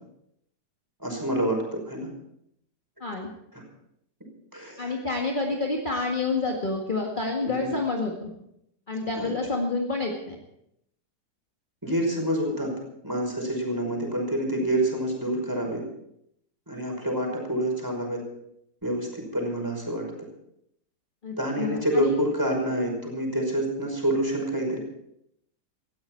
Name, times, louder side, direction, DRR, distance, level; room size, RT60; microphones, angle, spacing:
voice 1, 1.0-2.1 4.5-4.9 7.4-7.7 9.2-9.3 11.8-12.7 13.0-15.8 16.7-18.2 18.8-20.1 21.4-24.8, right 1 dB, 10° right, 0 dB, 5.4 m, -27 dB
voice 2, 4.8-8.3 8.9-10.4 21.2-22.2, left 3 dB, 30° left, -1 dB, 2.0 m, -28 dB
18.0 x 15.0 x 4.6 m, 0.76 s
omnidirectional pair, 1.7 m